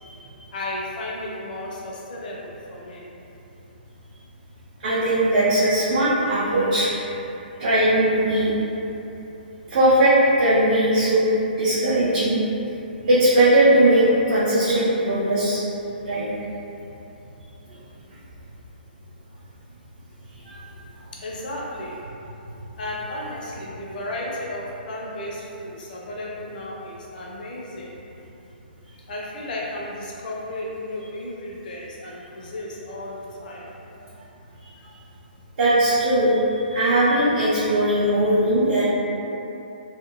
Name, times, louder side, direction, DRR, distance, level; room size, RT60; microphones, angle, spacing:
voice 1, 0.5-3.1 21.1-22.0 22.8-28.0 29.1-33.7, left 1 dB, 55° left, -4 dB, 0.6 m, -34 dB
voice 2, 4.8-6.9 7.6-8.5 9.7-12.4 13.1-15.6 16.1-16.2 20.4-20.6 35.6-36.4 36.6-38.8, right 1 dB, 50° right, -11 dB, 0.6 m, -19 dB
2.5 x 2.2 x 2.9 m, 3.0 s
figure-of-eight pair, 130°, 6 cm